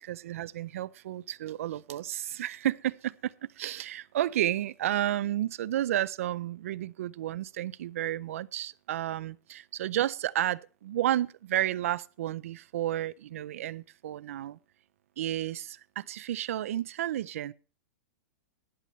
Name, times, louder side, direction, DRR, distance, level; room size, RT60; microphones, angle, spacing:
voice 1, 0.0-14.6 15.2-17.5, right 12 dB, 55° right, 0.5 m, -32 dB
11.0 x 10.0 x 4.3 m
supercardioid pair, 175°, 9 cm